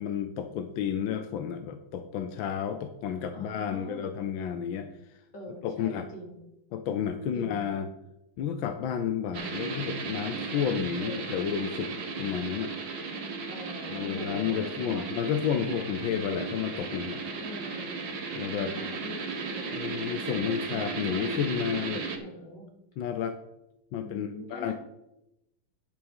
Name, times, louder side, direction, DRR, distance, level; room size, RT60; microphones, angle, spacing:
voice 1, 0.0-5.2 5.6-6.1 6.7-7.9 8.4-12.7 13.9-17.2 18.4-18.7 19.7-22.1 23.0-23.4 23.9-24.7, left 8 dB, 75° left, 8 dB, 1.4 m, -31 dB
voice 2, 3.3-4.1 5.3-6.4 7.3-7.6 11.0-11.3 13.5-15.3 15.6-15.7 16.0-16.1 17.4-17.9 18.5-19.6 20.5-20.6 22.2-22.7 24.0-24.7, left 1 dB, 55° left, -1 dB, 3.3 m, -43 dB
sound 1, 9.3-22.2, right 4 dB, 70° right, 2.2 m, -35 dB
10.5 x 6.2 x 5.5 m, 0.88 s
omnidirectional pair, 2.2 m